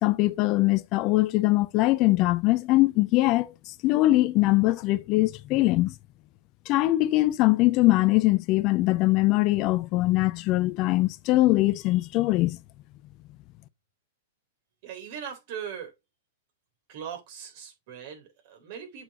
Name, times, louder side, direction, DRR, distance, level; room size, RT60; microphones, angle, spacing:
voice 1, 0.0-5.9 6.7-12.6, left 18 dB, 40° left, 0.5 m, -22 dB
voice 2, 14.8-15.9 16.9-19.0, right 8 dB, 55° right, 3.5 m, -39 dB
8.2 x 5.5 x 2.8 m
hypercardioid pair, 105°, 0 cm